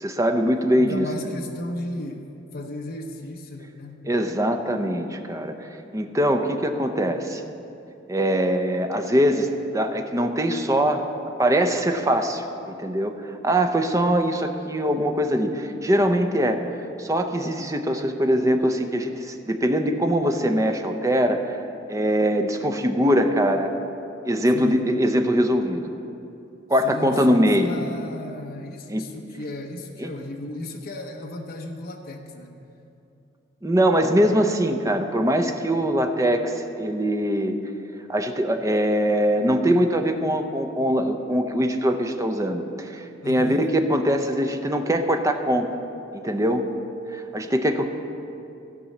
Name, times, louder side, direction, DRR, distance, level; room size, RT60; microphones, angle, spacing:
voice 1, 0.0-1.1 4.1-7.4 8.1-9.5 9.7-11.0 11.4-16.6 17.0-21.6 21.9-23.7 24.3-25.9 26.7-27.8 28.9-29.1 30.0-30.1 33.6-37.5 38.1-45.6 46.1-46.7 47.1-47.9, equal, 15° right, 5 dB, 0.7 m, -22 dB
voice 2, 0.6-4.0 24.5-24.8 26.8-32.6 43.2-43.7, left 2 dB, 50° left, 2 dB, 0.8 m, -35 dB
15.5 x 5.4 x 7.2 m, 2.8 s
head